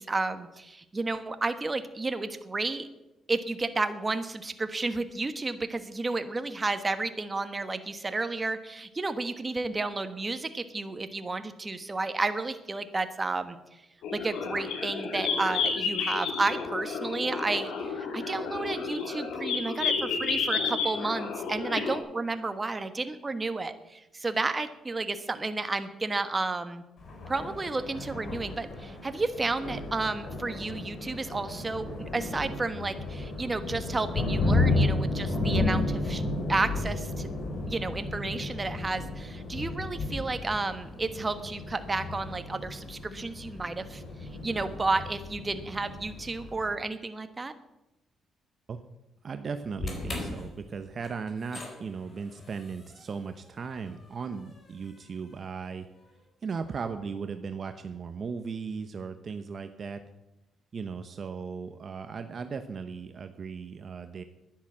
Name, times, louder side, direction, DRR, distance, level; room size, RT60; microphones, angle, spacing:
voice 1, 0.0-2.9 3.3-13.6 14.1-26.8 27.3-36.2 36.5-37.3 37.6-47.5, right 3 dB, 25° right, 10 dB, 1.2 m, -32 dB
sound 1, 14.0-22.0, left 5 dB, 80° left, 2.4 m, -31 dB
Thunder, 27.0-46.7, left 2 dB, 55° left, 4.3 m, -33 dB
voice 2, 49.2-55.9 56.4-60.0 60.7-64.2, right 5 dB, 45° right, 9 dB, 0.9 m, -37 dB
sound 2, 49.8-56.0, left 2 dB, 40° left, 4.0 m, -42 dB
11.0 x 10.0 x 7.5 m, 0.93 s
cardioid pair, 90°, 0 cm